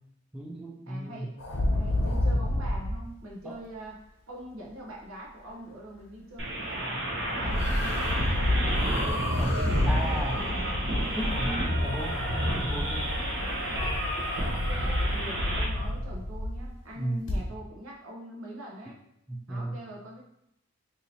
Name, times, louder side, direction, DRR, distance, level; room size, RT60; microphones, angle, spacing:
voice 1, 0.3-1.3 3.4-3.6 9.4-10.6 11.2-13.1 17.0-17.3 19.3-19.8, right 1 dB, 5° right, -2 dB, 0.3 m, -35 dB
voice 2, 0.9-1.4 1.7-10.9 14.4-19.0 19.5-20.2, right 1 dB, 85° right, -1 dB, 0.8 m, -44 dB
sound 1, 1.4-3.0 7.4-16.7 17.3-17.4, left 1 dB, 65° left, 0.8 m, -29 dB
sound 2, 6.4-15.7, equal, 60° right, 0.8 m, -31 dB
2.8 x 2.8 x 4.1 m, 0.78 s
head